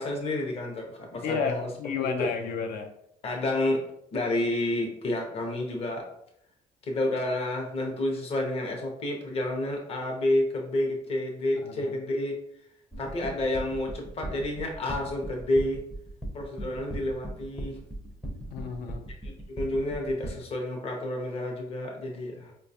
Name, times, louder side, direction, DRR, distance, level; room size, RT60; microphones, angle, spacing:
voice 1, 0.0-1.7 2.0-2.3 3.2-3.8 4.1-6.1 6.8-12.4 13.0-15.8 16.3-17.8 19.2-22.5, left 1 dB, 40° left, 1 dB, 0.7 m, -30 dB
voice 2, 1.2-2.9 11.6-11.9 16.6-16.8 18.5-19.0, left 5 dB, 75° left, 4 dB, 0.4 m, -32 dB
sound 1, 12.9-20.3, right 1 dB, 5° left, 0.5 m, -37 dB
4.6 x 2.3 x 2.6 m, 0.73 s
cardioid pair, 160°, 16 cm